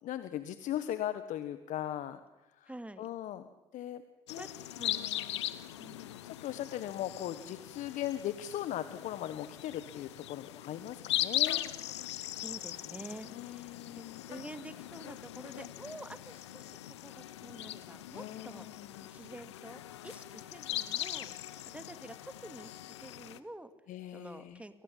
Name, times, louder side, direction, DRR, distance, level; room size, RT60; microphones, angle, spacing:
voice 1, 0.0-2.2 2.5-2.7 3.0-4.0 4.3-4.5 4.9-5.6 6.2-11.6 13.3-14.2 18.1-19.0 23.9-24.6, left 12 dB, 60° left, 11 dB, 1.5 m, -39 dB
voice 2, 2.7-3.1 4.4-5.0 5.8-6.1 12.3-18.7 19.1-21.3 21.7-23.7 24.1-24.8, right 1 dB, 10° right, 9 dB, 2.9 m, -48 dB
sound 1, 4.3-23.4, left 13 dB, 85° left, 1.2 m, -40 dB
29.5 x 24.5 x 7.6 m, 1.0 s
hypercardioid pair, 55°, 14 cm